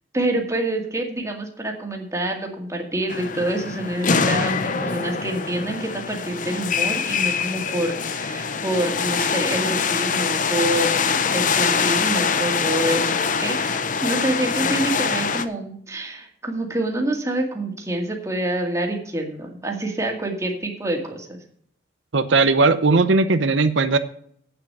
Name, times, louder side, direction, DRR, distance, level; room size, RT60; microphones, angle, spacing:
voice 1, 0.1-21.4, right 1 dB, 15° right, 2 dB, 2.1 m, -27 dB
sound 1, 3.1-15.4, left 5 dB, 45° left, 0.7 m, -24 dB
voice 2, 22.1-24.0, right 3 dB, 90° right, 10 dB, 0.8 m, -18 dB
8.5 x 7.9 x 6.7 m, 0.63 s
head